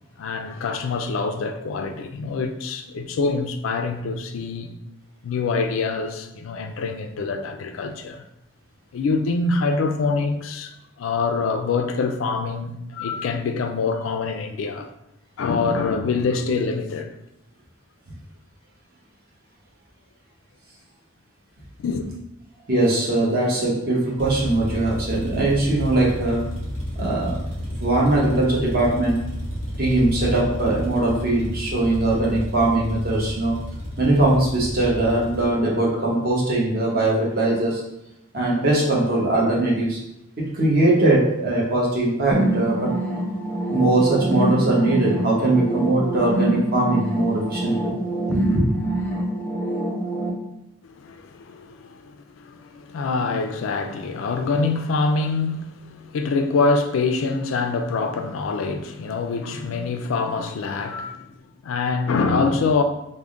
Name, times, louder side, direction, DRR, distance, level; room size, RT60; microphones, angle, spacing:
voice 1, 0.2-4.7 5.2-8.2 8.9-14.9 15.4-17.1 21.8-22.1 50.8-61.3 61.6-62.8, left 4 dB, 85° left, 0.4 m, -25 dB
voice 2, 22.7-26.4 26.9-27.4 27.8-29.2 29.8-33.6 34.0-37.8 38.3-40.0 40.4-42.9 43.7-47.9 48.3-48.6, right 2 dB, 50° right, 0.9 m, -21 dB
sound 1, 24.2-35.5, equal, 75° right, 1.2 m, -31 dB
sound 2, 42.3-50.3, right 1 dB, 10° left, 0.4 m, -25 dB
3.5 x 2.1 x 3.6 m
head